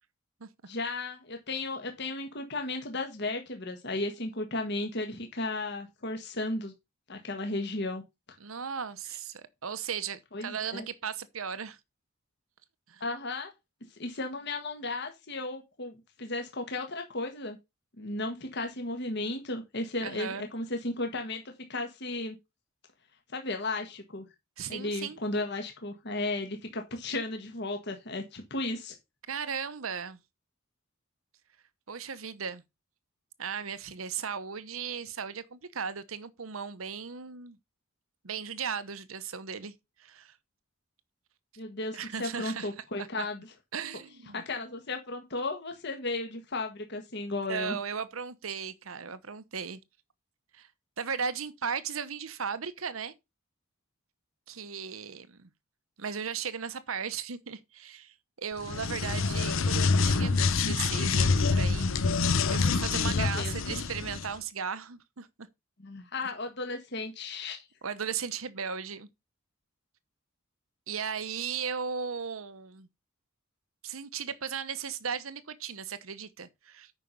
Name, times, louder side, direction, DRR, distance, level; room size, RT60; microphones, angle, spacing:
voice 1, 0.7-6.7 7.1-8.0 10.3-10.8 13.0-13.5 14.0-17.6 18.0-21.4 21.7-22.4 23.3-24.3 24.7-28.9 41.6-43.5 44.3-47.8 63.1-63.5 65.8-67.6, left 2 dB, 55° left, 1.5 m, -34 dB
voice 2, 8.4-11.8 12.9-13.0 20.0-20.5 24.6-25.2 29.3-30.2 31.9-32.6 33.4-37.6 38.2-39.7 40.0-40.3 41.9-42.7 43.2-43.3 43.7-44.4 47.5-49.8 50.5-50.7 51.0-53.1 54.5-55.5 56.0-61.9 62.5-65.3 67.8-69.1 70.9-72.9 73.8-76.9, right 6 dB, 90° right, 1.0 m, -36 dB
sound 1, 58.6-64.3, left 4 dB, 75° left, 0.7 m, -26 dB
9.0 x 5.8 x 5.2 m
head